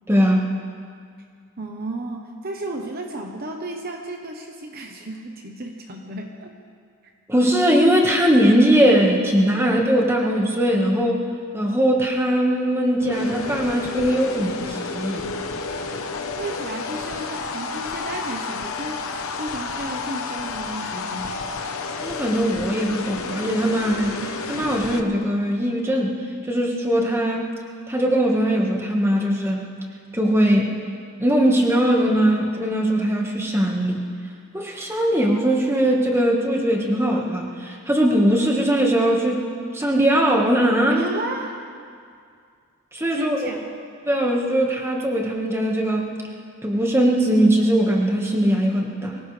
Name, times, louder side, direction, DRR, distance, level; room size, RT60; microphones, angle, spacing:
voice 1, 0.1-0.4 7.3-11.2 11.5-15.3 22.0-24.2 24.5-26.1 26.5-27.5 27.9-29.6 30.1-30.7 31.2-34.0 34.5-39.4 39.7-41.1 42.9-43.4 44.1-46.2 46.6-49.2, equal, 10° right, -1 dB, 1.5 m, -20 dB
voice 2, 1.6-6.5 16.4-19.1 19.4-21.4 40.9-41.6 43.1-43.7, right 1 dB, 40° right, 2 dB, 1.0 m, -33 dB
sound 1, 13.0-25.0, left 4 dB, 75° left, 1.0 m, -31 dB
24.0 x 17.0 x 3.4 m, 2.2 s
head